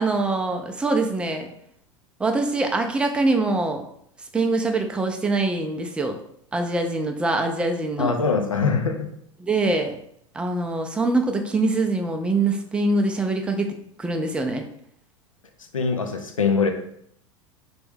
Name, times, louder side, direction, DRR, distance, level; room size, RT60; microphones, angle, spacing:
voice 1, 0.0-1.5 2.2-3.8 4.3-6.2 6.5-8.1 9.4-9.9 10.3-14.6, right 2 dB, 5° right, 4 dB, 0.4 m, -24 dB
voice 2, 8.0-9.1 15.7-16.7, left 5 dB, 90° left, 5 dB, 0.4 m, -22 dB
3.3 x 2.2 x 3.4 m, 0.69 s
figure-of-eight pair, 90°, 17 cm